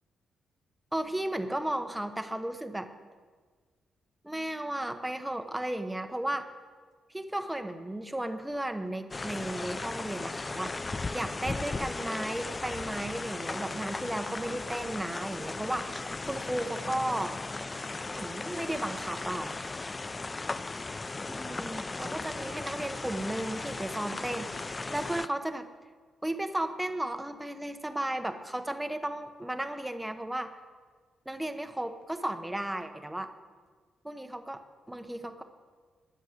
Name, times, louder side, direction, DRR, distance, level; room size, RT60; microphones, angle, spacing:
voice 1, 0.9-2.9 4.2-6.5 7.1-10.7 11.1-17.4 18.1-19.6 21.3-25.7 26.2-30.5 31.3-33.3 34.0-34.6 34.9-35.4, right 1 dB, 5° right, 8 dB, 0.9 m, -34 dB
sound 1, 9.1-25.3, left 3 dB, 20° left, 0.3 m, -37 dB
20.5 x 7.1 x 6.5 m, 1.5 s
cardioid pair, 125°, 0 cm